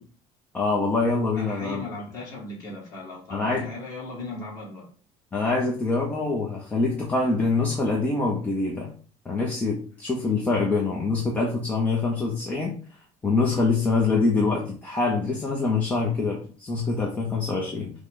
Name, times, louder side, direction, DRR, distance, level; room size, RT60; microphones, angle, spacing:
voice 1, 0.5-1.8 3.3-3.7 5.3-8.9 9.2-12.7 13.2-17.9, left 3 dB, 10° left, -2 dB, 0.6 m, -25 dB
voice 2, 1.4-4.9, left 2 dB, 30° left, -3 dB, 1.7 m, -37 dB
6.0 x 2.2 x 3.7 m, 0.41 s
cardioid pair, 175°, 12 cm